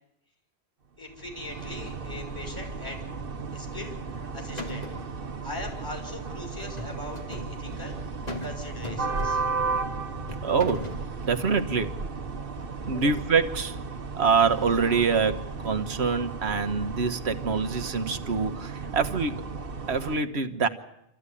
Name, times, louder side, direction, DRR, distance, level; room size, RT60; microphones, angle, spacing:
voice 1, 1.0-3.0 3.5-4.0 4.3-4.9 5.4-8.0 8.4-9.4, left 2 dB, 20° left, 2 dB, 5.9 m, -40 dB
sound 1, 1.1-20.2, right 4 dB, 60° right, 1.4 m, -35 dB
sound 2, 3.9-4.3 4.6-5.1 6.6-7.5 8.3-8.6 8.8-9.6 10.3-11.1, left 2 dB, 40° left, 2.6 m, -38 dB
voice 2, 10.4-10.9 11.2-11.9 12.9-13.8 14.2-19.5 19.9-20.7, right 5 dB, 80° right, 8 dB, 1.5 m, -25 dB
26.5 x 14.5 x 9.9 m, 0.84 s
omnidirectional pair, 1.1 m